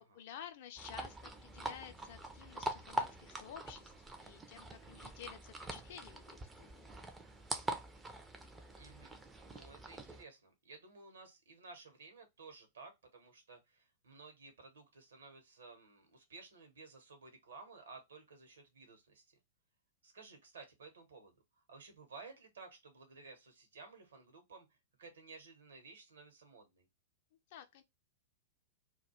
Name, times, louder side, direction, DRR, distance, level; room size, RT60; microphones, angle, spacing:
voice 1, 0.1-3.9 4.2-6.9 27.5-27.8, left 9 dB, 50° left, 0.4 m, -52 dB
sound 1, 0.8-10.2, right 2 dB, 10° right, 0.4 m, -44 dB
voice 2, 8.7-19.3 20.0-21.3 21.7-26.9, right 4 dB, 65° right, 1.0 m, -55 dB
2.3 x 2.2 x 2.9 m
figure-of-eight pair, 100°, 0 cm